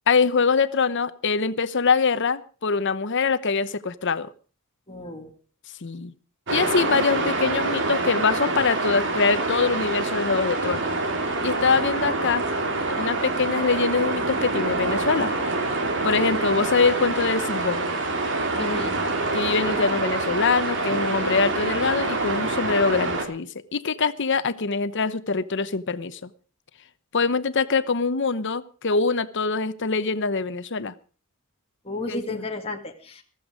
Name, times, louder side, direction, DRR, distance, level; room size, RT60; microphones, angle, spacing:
voice 1, 0.1-4.3 5.8-6.1 6.5-10.9 11.4-12.4 13.0-15.3 16.0-17.9 19.3-26.3 27.1-30.9 32.1-32.4, left 4 dB, 55° left, 14 dB, 0.9 m, -24 dB
voice 2, 4.9-5.3 18.6-18.9 31.8-33.2, left 2 dB, 25° left, 2 dB, 1.9 m, -32 dB
sound 1, 6.5-23.2, right 2 dB, 55° right, 3.0 m, -26 dB
14.5 x 14.5 x 5.1 m, 0.38 s
head